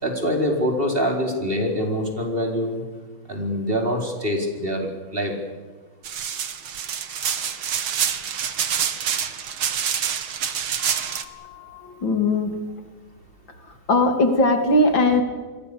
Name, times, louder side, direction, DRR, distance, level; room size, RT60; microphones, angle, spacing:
voice 1, 0.0-2.8 3.3-5.3, equal, 25° right, 3 dB, 4.8 m, -24 dB
sound 1, 6.0-11.2, right 8 dB, 80° right, 2.4 m, -26 dB
voice 2, 10.8-12.6 13.6-15.2, left 2 dB, 65° left, 6 dB, 3.5 m, -21 dB
29.0 x 22.0 x 7.0 m, 1.4 s
omnidirectional pair, 2.3 m